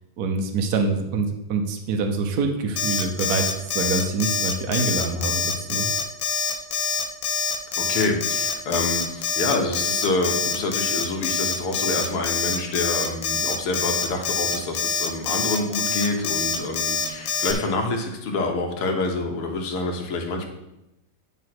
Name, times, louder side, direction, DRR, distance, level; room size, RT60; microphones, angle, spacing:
voice 1, 0.2-5.9, right 3 dB, 60° right, 4 dB, 1.1 m, -25 dB
Alarm, 2.8-17.5, left 5 dB, 70° left, 1.6 m, -25 dB
voice 2, 7.8-20.5, left 3 dB, 90° left, 3 dB, 2.1 m, -27 dB
9.9 x 3.8 x 6.0 m, 0.88 s
omnidirectional pair, 2.4 m